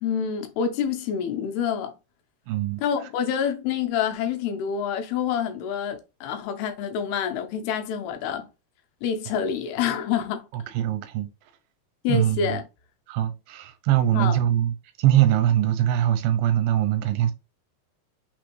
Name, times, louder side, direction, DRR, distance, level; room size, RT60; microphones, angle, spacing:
voice 1, 0.0-1.9 2.8-8.5 9.0-10.4 12.0-12.6 14.1-14.4, left 8 dB, 90° left, 2.7 m, -27 dB
voice 2, 2.5-2.8 10.5-11.3 12.1-12.6 13.1-14.7 15.0-17.3, right 12 dB, 85° right, 2.4 m, -22 dB
6.0 x 2.5 x 3.0 m
omnidirectional pair, 4.4 m